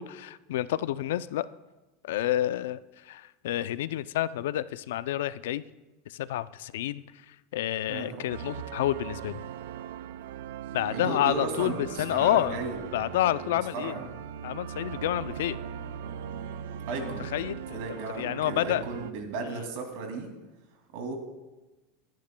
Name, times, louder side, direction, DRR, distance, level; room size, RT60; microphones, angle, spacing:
voice 1, 0.0-1.5 2.0-5.6 6.1-9.4 10.7-12.6 12.9-13.9 14.4-15.6 17.0-17.8 18.2-18.8 19.5-19.6, left 13 dB, 85° left, 16 dB, 0.4 m, -29 dB
voice 2, 7.9-8.3 10.9-12.8 13.7-14.1 16.9-17.3 17.7-20.3 20.9-21.1, right 3 dB, 60° right, 3 dB, 2.4 m, -35 dB
sound 1, 8.3-19.1, right 9 dB, 85° right, 0.4 m, -39 dB
23.0 x 10.5 x 2.2 m, 1.1 s
supercardioid pair, 160°, 0 cm